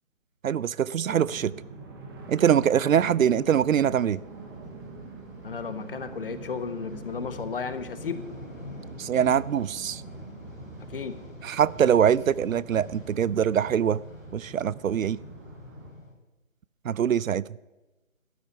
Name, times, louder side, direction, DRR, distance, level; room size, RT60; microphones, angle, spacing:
voice 1, 0.4-1.5 2.3-4.2 9.0-10.0 11.4-14.0 14.3-15.2 16.8-17.5, right 9 dB, 85° right, 0.5 m, -23 dB
sound 1, 1.1-15.9, right 3 dB, 20° right, 1.2 m, -44 dB
sound 2, 2.3-16.1, left 2 dB, 80° left, 3.5 m, -47 dB
voice 2, 5.4-8.2 10.9-11.2, left 5 dB, 45° left, 0.9 m, -34 dB
12.5 x 9.0 x 5.7 m
figure-of-eight pair, 155°, 39 cm